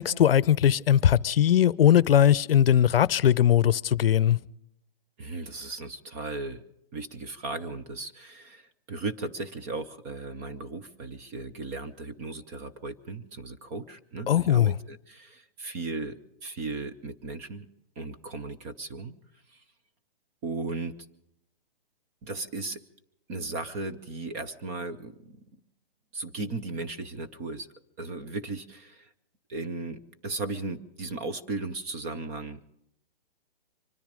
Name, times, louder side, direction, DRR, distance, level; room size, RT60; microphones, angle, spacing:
voice 1, 0.0-4.4 14.3-14.8, left 10 dB, 70° left, 0.6 m, -20 dB
voice 2, 5.2-6.6 6.9-17.7 18.0-19.2 20.4-21.0 22.2-22.8 23.3-25.4 26.1-27.7 28.0-29.1 29.5-32.6, right 3 dB, 15° right, 0.5 m, -36 dB
25.0 x 10.5 x 5.1 m
hypercardioid pair, 150°, 30 cm